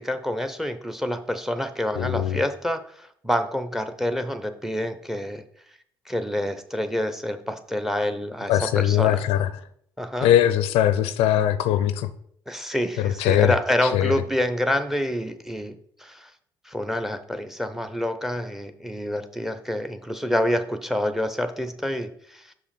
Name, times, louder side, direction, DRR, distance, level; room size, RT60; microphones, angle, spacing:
voice 1, 0.0-5.4 6.1-9.2 10.0-10.3 12.5-16.3 16.7-22.4, left 1 dB, 5° right, 11 dB, 0.6 m, -27 dB
voice 2, 2.0-2.4 8.5-9.5 10.2-12.1 13.0-13.5 13.8-14.1, left 11 dB, 65° left, 13 dB, 0.4 m, -21 dB
5.7 x 4.8 x 4.1 m, 0.67 s
hypercardioid pair, 55°, 11 cm